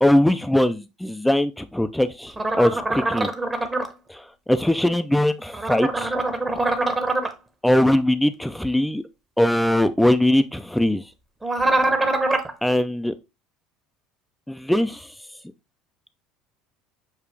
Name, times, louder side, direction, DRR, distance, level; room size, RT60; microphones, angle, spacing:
voice 1, 0.0-3.3 4.1-6.1 7.6-9.0 9.4-11.0 12.6-13.1 14.5-15.1, left 1 dB, 5° left, 0.3 m, -21 dB
sound 1, 2.4-3.9 5.5-7.3 11.4-12.5, right 2 dB, 15° right, 0.8 m, -23 dB
6.7 x 2.4 x 3.2 m
supercardioid pair, 100°, 0 cm